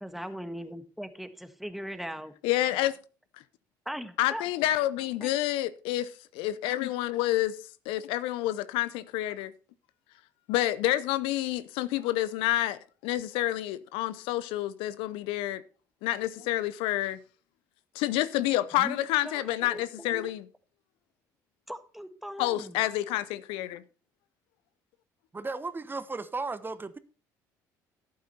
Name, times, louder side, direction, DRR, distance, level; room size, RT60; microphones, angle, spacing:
voice 1, 0.0-2.3 3.8-4.4 5.2-5.3 16.4-16.5 18.7-20.3 21.7-22.8, equal, ahead, 1.5 m, -40 dB
voice 2, 2.4-2.9 4.2-7.6 7.9-9.5 10.5-15.6 16.0-17.2 17.9-20.5 22.4-23.8, left 15 dB, 75° left, 0.6 m, -28 dB
voice 3, 25.3-27.0, right 3 dB, 25° right, 1.0 m, -35 dB
11.5 x 8.7 x 4.2 m
hypercardioid pair, 60°, 9 cm